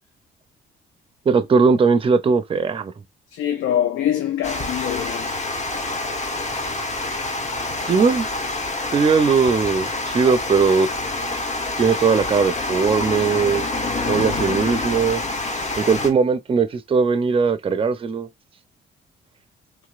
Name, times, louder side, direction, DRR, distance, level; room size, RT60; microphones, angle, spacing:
voice 1, 1.3-2.9 7.9-8.3 8.9-10.9 11.8-13.7 14.1-15.2 15.8-18.3, right 5 dB, 25° right, 0.5 m, -19 dB
voice 2, 3.3-5.4, left 10 dB, 75° left, 0.5 m, -24 dB
Water, 4.4-16.1, left 2 dB, 35° left, 0.9 m, -27 dB
3.0 x 2.9 x 2.4 m
cardioid pair, 90°, 20 cm